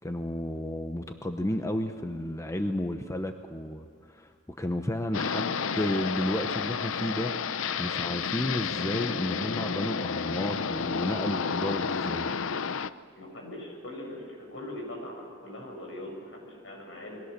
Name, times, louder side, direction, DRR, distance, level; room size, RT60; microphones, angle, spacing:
voice 1, 0.0-4.3 4.6-12.3, left 1 dB, 15° left, 6 dB, 0.9 m, -32 dB
sound 1, 5.1-12.9, left 6 dB, 90° left, 0.7 m, -31 dB
voice 2, 13.1-17.2, left 1 dB, 70° left, 0 dB, 7.2 m, -41 dB
28.5 x 22.0 x 6.7 m, 2.1 s
head